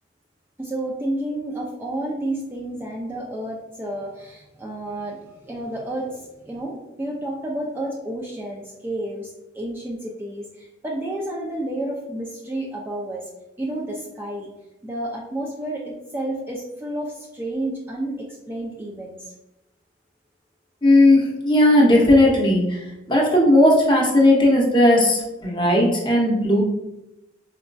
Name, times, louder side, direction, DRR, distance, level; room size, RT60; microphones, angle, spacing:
voice 1, 0.6-13.2 13.6-14.5 14.8-19.3, right 1 dB, 10° right, -3 dB, 0.3 m, -30 dB
voice 2, 20.8-26.6, left 1 dB, 25° left, -2 dB, 0.7 m, -16 dB
4.1 x 2.5 x 2.2 m, 0.95 s
head